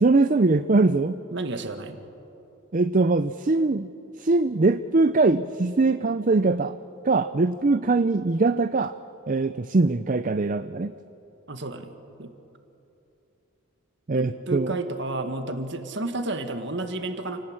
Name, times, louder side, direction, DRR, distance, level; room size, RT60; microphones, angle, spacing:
voice 1, 0.0-1.2 2.7-3.9 4.2-6.8 7.1-8.9 9.3-10.9 14.1-14.7, right 3 dB, 35° right, 12 dB, 0.5 m, -22 dB
voice 2, 1.3-2.0 11.5-12.4 14.1-17.4, right 2 dB, 55° right, 6 dB, 1.8 m, -31 dB
28.5 x 18.5 x 8.9 m, 2.8 s
head